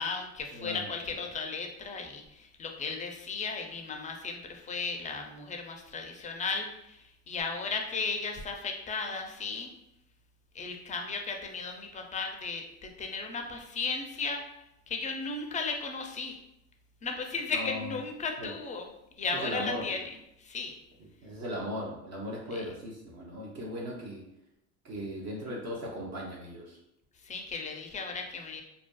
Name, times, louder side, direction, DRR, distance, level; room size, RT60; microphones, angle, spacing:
voice 1, 0.0-9.7 10.5-14.4 14.9-16.4 17.0-18.9 19.2-20.8 22.5-22.6 27.2-28.6, left 4 dB, 20° left, 3 dB, 0.4 m, -35 dB
voice 2, 0.5-1.2 17.5-18.0 18.4-18.5 19.3-20.0 21.2-24.3 24.8-26.8, equal, 45° right, -2 dB, 0.6 m, -38 dB
2.5 x 2.3 x 2.2 m, 0.84 s
supercardioid pair, 80°, 38 cm